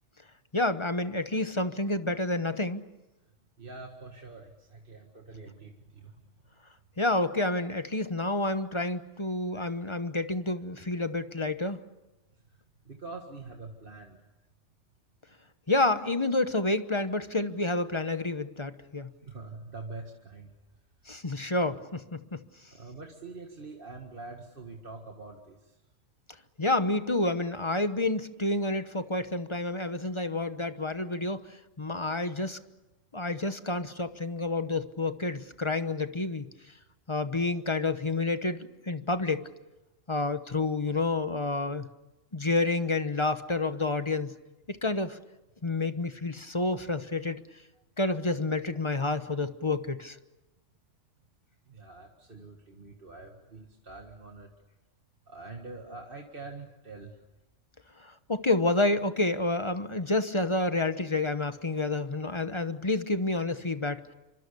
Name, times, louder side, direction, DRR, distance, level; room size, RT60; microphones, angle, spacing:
voice 1, 0.5-2.8 7.0-11.8 15.7-19.1 21.1-22.4 26.6-32.6 33.1-36.5 37.1-39.5 40.1-41.9 42.3-44.3 44.7-45.2 45.6-47.4 48.0-50.2 58.0-64.1, left 2 dB, 25° left, 10 dB, 1.0 m, -29 dB
voice 2, 3.6-6.5 12.5-14.2 19.2-20.5 22.7-25.8 47.8-47.9 51.7-54.5 55.3-57.2, right 3 dB, 45° right, 2 dB, 2.1 m, -45 dB
27.5 x 25.5 x 6.9 m, 1.0 s
omnidirectional pair, 1.2 m